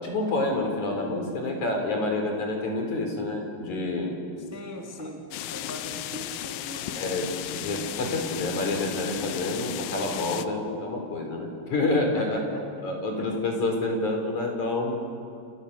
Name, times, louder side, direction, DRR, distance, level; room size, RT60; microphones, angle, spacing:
voice 1, 0.0-4.2 6.9-12.4 12.8-15.0, left 2 dB, 40° left, 2 dB, 5.3 m, -28 dB
voice 2, 4.4-7.0 12.1-12.6 13.2-13.4, equal, 5° right, 0 dB, 1.6 m, -41 dB
sound 1, 5.3-10.5, left 13 dB, 80° left, 2.2 m, -35 dB
29.5 x 29.0 x 6.9 m, 2.4 s
omnidirectional pair, 5.2 m